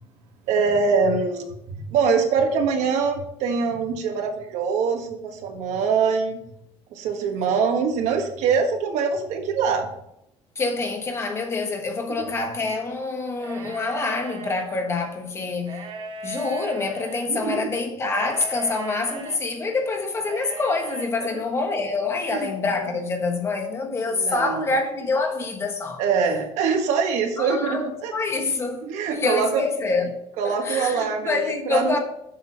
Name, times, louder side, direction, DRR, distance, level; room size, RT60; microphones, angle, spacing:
voice 1, 0.5-6.4 6.9-9.9 17.3-17.7 21.2-21.4 22.3-22.5 22.8-22.9 24.1-24.7 26.0-28.1 28.8-29.6 30.4-32.0, right 5 dB, 85° right, 1.5 m, -24 dB
voice 2, 10.5-15.9 16.2-26.0 27.4-30.1 30.4-32.0, left 3 dB, 25° left, 1.3 m, -26 dB
sound 1, 13.3-14.6 15.6-17.3 18.1-19.4 20.2-21.1, right 5 dB, 40° right, 1.0 m, -37 dB
7.4 x 6.2 x 5.4 m
cardioid pair, 175°, 12 cm